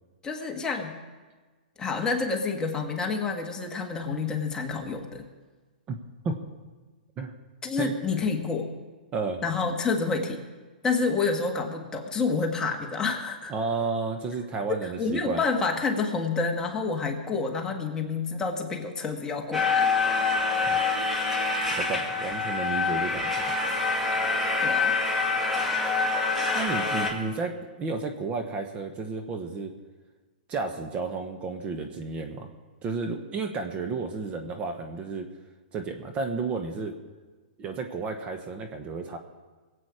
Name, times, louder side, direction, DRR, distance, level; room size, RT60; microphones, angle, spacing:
voice 1, 0.2-1.0 1.8-5.2 7.6-8.7 9.4-10.4 10.8-13.5 14.8-19.9 24.6-25.0, left 4 dB, 15° left, 1 dB, 1.5 m, -28 dB
voice 2, 9.1-9.4 13.5-15.4 20.7-20.8 21.7-23.5 26.5-29.7 30.5-32.5 32.8-35.3 35.7-37.0 37.6-39.2, right 4 dB, 25° right, 5 dB, 1.2 m, -32 dB
sound 1, 19.5-27.1, left 4 dB, 5° right, 2.2 m, -26 dB
22.5 x 8.4 x 4.9 m, 1.3 s
hypercardioid pair, 140°, 5 cm